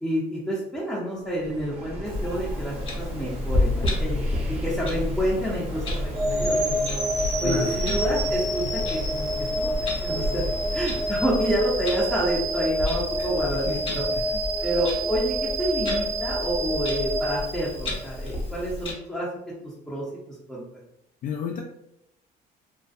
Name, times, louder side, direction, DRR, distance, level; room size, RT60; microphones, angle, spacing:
voice 1, 0.0-4.2 4.6-5.8 6.2-7.0 7.4-8.6 8.9-9.3 9.6-9.7 10.0-10.4 10.7-14.0 14.6-19.3 19.6-20.0 20.5-20.6, right 1 dB, 5° left, -8 dB, 0.6 m, -28 dB
sound 1, 1.2-12.1, equal, 40° right, 0.5 m, -34 dB
Clock, 2.0-18.9, left 2 dB, 35° left, 0.8 m, -32 dB
sound 2, 6.1-18.3, right 1 dB, 75° right, 1.1 m, -28 dB
voice 2, 7.4-8.0 13.2-13.3 13.5-14.4 21.2-21.6, left 6 dB, 55° left, 0 dB, 0.4 m, -33 dB
2.5 x 2.1 x 2.4 m, 0.81 s
cardioid pair, 110°, 17 cm